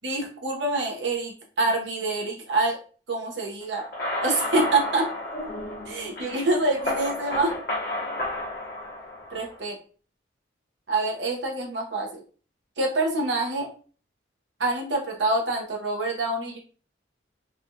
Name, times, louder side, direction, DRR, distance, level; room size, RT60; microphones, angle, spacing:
voice 1, 0.0-2.8 3.1-3.8 4.2-5.1 5.9-7.5 9.3-9.7 10.9-12.2 12.8-13.7 14.6-16.6, right 2 dB, 70° right, 0 dB, 0.9 m, -26 dB
sound 1, 3.8-9.6, left 2 dB, 55° left, 1.0 m, -32 dB
3.3 x 2.4 x 2.7 m, 0.40 s
head